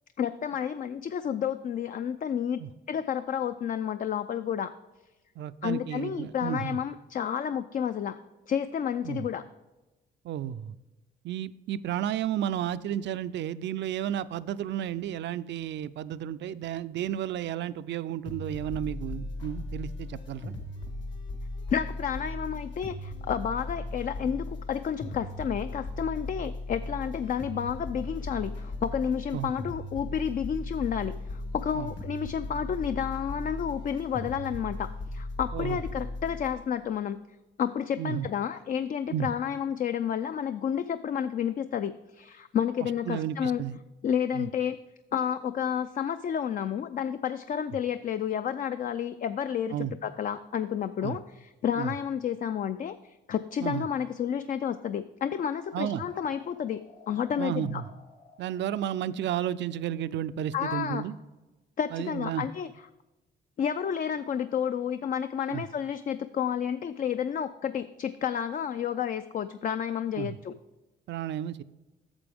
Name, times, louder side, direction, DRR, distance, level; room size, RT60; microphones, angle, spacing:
voice 1, 0.2-2.6 2.9-4.7 5.6-8.2 8.5-9.4 21.7-37.2 37.6-43.6 44.0-44.8 45.1-57.8 60.5-61.0 61.8-62.7 63.6-70.5, left 8 dB, 45° left, 11 dB, 0.4 m, -31 dB
voice 2, 5.4-6.8 9.0-9.3 10.2-10.7 11.2-20.5 29.3-29.5 31.8-31.9 35.5-35.8 38.0-38.3 39.1-39.3 42.8-43.8 44.3-44.5 49.7-49.9 51.0-51.2 51.8-51.9 53.6-53.9 55.7-56.0 57.4-57.9 58.4-61.2 61.9-62.5 65.5-65.6 70.2-70.4 71.1-71.6, right 10 dB, 65° right, 15 dB, 0.4 m, -32 dB
sound 1, 18.3-36.5, left 2 dB, 65° left, 2.0 m, -37 dB
sound 2, 55.6-60.1, left 3 dB, 80° left, 2.3 m, -55 dB
8.9 x 6.9 x 3.5 m, 1.1 s
cardioid pair, 90°, 20 cm